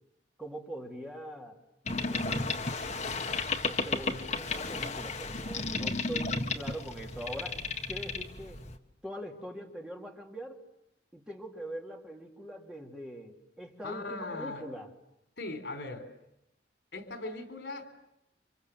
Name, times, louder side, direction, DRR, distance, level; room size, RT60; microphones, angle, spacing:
voice 1, 0.4-1.6 2.1-2.5 3.7-7.6 7.9-8.6 9.0-10.6 11.1-14.9, right 1 dB, 5° right, 1 dB, 2.9 m, -42 dB
Boat Water vehicle, 1.9-8.8, left 3 dB, 40° left, 1.7 m, -33 dB
voice 2, 13.8-14.6 15.4-16.0 16.9-17.8, left 2 dB, 80° left, 7 dB, 4.2 m, -39 dB
30.0 x 25.5 x 7.8 m, 0.82 s
head